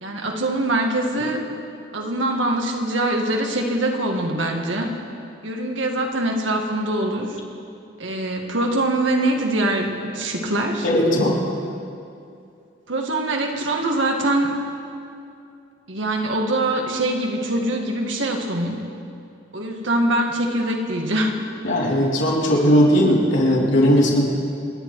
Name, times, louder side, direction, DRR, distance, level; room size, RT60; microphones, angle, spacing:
voice 1, 0.0-1.5 1.9-5.0 5.4-7.4 8.0-10.9 12.9-14.6 15.9-18.9 19.5-21.8, right 1 dB, 80° right, 2 dB, 1.9 m, -23 dB
voice 2, 10.8-11.4 21.6-24.3, equal, 75° left, -4 dB, 3.6 m, -17 dB
28.5 x 9.7 x 4.8 m, 2.5 s
head